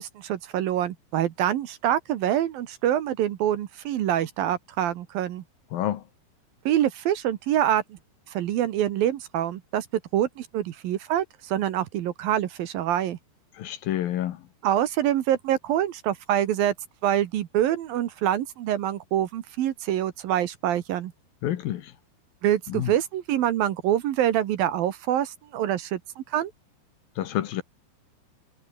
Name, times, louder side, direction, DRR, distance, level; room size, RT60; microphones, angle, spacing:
voice 1, 0.0-5.4 6.7-8.0 8.3-9.9 10.1-13.2 14.6-16.7 17.0-21.1 22.4-26.5, right 11 dB, 65° right, 2.8 m, -25 dB
voice 2, 5.7-6.0 13.6-14.4 21.4-21.9 22.7-22.9 27.2-27.6, left 12 dB, 65° left, 2.7 m, -28 dB
omnidirectional pair, 4.9 m